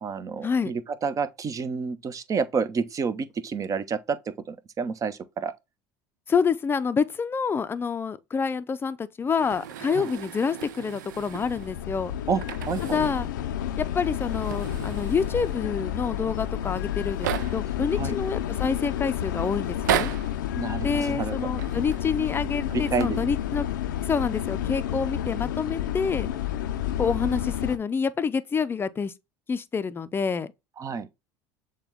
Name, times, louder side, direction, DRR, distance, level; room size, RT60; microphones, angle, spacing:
voice 1, 0.0-5.5 10.0-10.1 12.3-13.0 17.9-18.2 20.6-21.4 22.7-23.2 30.8-31.1, right 5 dB, 35° right, 0.6 m, -29 dB
voice 2, 6.3-12.1 12.8-13.3 13.8-20.1 20.8-23.7 24.0-26.3 27.0-29.1 29.5-30.5, left 5 dB, 25° left, 0.4 m, -27 dB
sound 1, 9.3-11.8 12.3-13.4 13.6-13.7 14.2-15.7 16.4-16.5 16.7-17.8 18.4-18.9 19.6-20.4 21.5-22.1 22.8-23.0, right 10 dB, 90° right, 0.4 m, -34 dB
sound 2, 11.1-27.8, left 11 dB, 90° left, 0.4 m, -30 dB
6.8 x 2.3 x 3.5 m
hypercardioid pair, 85°, 10 cm